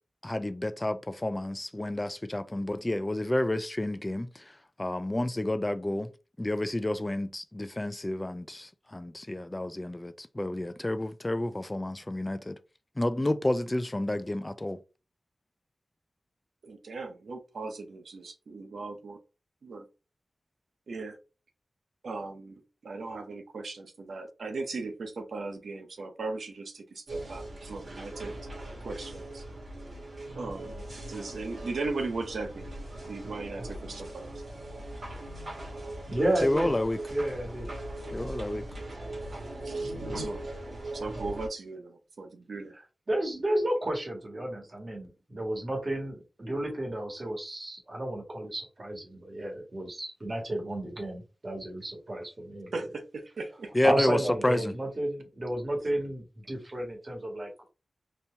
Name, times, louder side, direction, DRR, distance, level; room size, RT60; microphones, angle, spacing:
voice 1, 0.2-6.1 6.4-12.6 13.0-14.8 36.4-37.0 38.1-38.6 53.7-54.7, left 1 dB, 20° left, 0.4 m, -30 dB
voice 2, 16.6-19.2 19.6-19.8 20.9-21.2 22.0-28.4 28.8-29.4 30.3-30.7 31.1-32.7 33.0-34.3 39.6-40.5 40.9-42.7 52.7-53.7, right 3 dB, 90° right, 0.8 m, -38 dB
sound 1, 27.1-41.5, right 1 dB, 65° right, 2.3 m, -39 dB
voice 3, 36.0-36.7 37.1-37.7 42.7-52.9 53.8-57.7, right 1 dB, 45° right, 1.7 m, -32 dB
4.3 x 2.7 x 3.4 m
wide cardioid pair, 75°, 0 cm